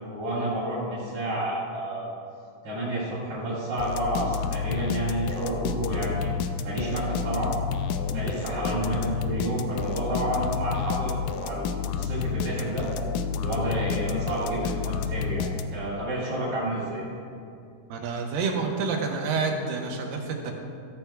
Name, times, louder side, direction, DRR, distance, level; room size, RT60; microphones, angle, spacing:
voice 1, 0.0-2.1 2.6-6.3 6.6-7.5 8.1-11.1 11.4-12.9 13.4-17.1, right 1 dB, 50° right, -9 dB, 4.2 m, -30 dB
sound 1, 3.8-16.0, left 6 dB, 85° left, 2.2 m, -30 dB
voice 2, 17.9-20.5, right 4 dB, 85° right, 1 dB, 2.8 m, -28 dB
14.5 x 13.0 x 2.3 m, 2.5 s
omnidirectional pair, 4.0 m